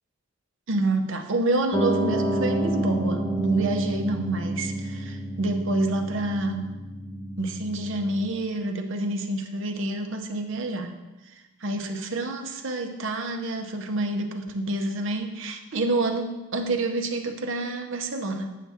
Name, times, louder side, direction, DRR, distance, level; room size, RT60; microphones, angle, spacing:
voice 1, 0.7-6.7 7.4-10.9 11.6-18.5, right 2 dB, 55° right, 5 dB, 0.7 m, -28 dB
Piano, 1.7-8.3, right 1 dB, 10° left, 0.8 m, -29 dB
8.4 x 5.7 x 3.5 m, 1.1 s
head